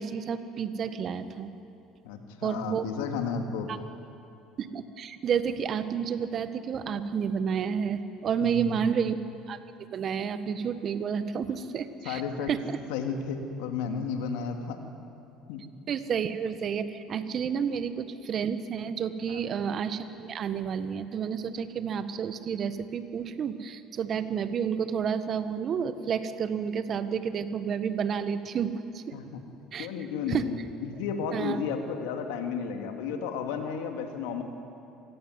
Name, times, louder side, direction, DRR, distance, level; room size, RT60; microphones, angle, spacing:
voice 1, 0.0-1.5 2.4-2.8 3.7-3.8 4.6-9.2 9.5-9.6 9.9-12.2 12.5-12.6 15.9-29.0 29.7-29.9 30.3-30.4 31.3-31.6, right 7 dB, 50° right, 11 dB, 1.6 m, -30 dB
voice 2, 2.0-3.7 8.4-8.8 12.0-12.5 12.9-14.8 15.5-15.6 19.3-19.6 29.1-29.4 29.8-34.4, left 6 dB, 75° left, 5 dB, 2.5 m, -33 dB
26.5 x 17.5 x 9.6 m, 2.8 s
hypercardioid pair, 65°, 0 cm